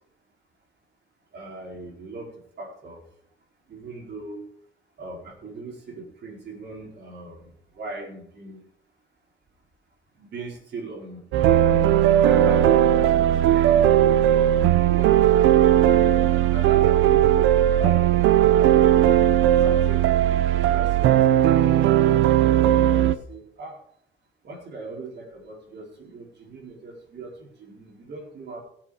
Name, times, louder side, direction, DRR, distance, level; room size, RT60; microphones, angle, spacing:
voice 1, 1.3-2.3 2.6-3.0 3.7-4.4 5.0-7.5 7.7-8.6 10.2-11.2 11.5-12.0 12.3-14.2 14.7-15.3 15.7-19.1 19.6-20.1 20.7-23.8 24.4-28.6, right 3 dB, 55° right, -3 dB, 4.3 m, -39 dB
sound 1, 11.3-23.1, right 11 dB, 90° right, 0.7 m, -18 dB
17.5 x 7.2 x 5.0 m, 0.67 s
cardioid pair, 90°, 20 cm